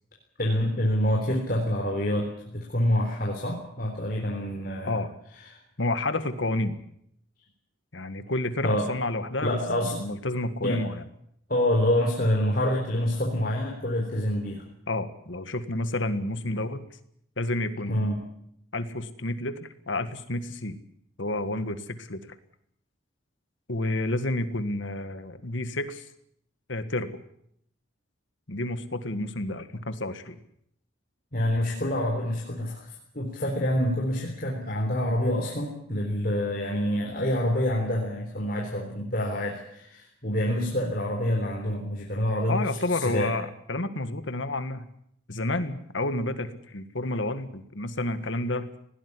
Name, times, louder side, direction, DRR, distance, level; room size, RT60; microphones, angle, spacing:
voice 1, 0.4-5.0 5.5-5.6 8.6-8.9 9.4-10.0 10.6-10.8 11.5-14.6 17.9-18.2 31.3-32.8 33.1-42.6 42.9-43.3, left 1 dB, 45° left, -1 dB, 3.8 m, -27 dB
voice 2, 5.8-6.7 7.9-11.1 14.9-16.9 17.4-18.1 18.7-20.8 21.2-22.2 23.7-26.0 26.7-27.1 28.5-30.4 42.5-44.9 45.3-48.7, left 2 dB, 65° left, 11 dB, 1.8 m, -30 dB
19.5 x 17.0 x 9.9 m, 0.73 s
head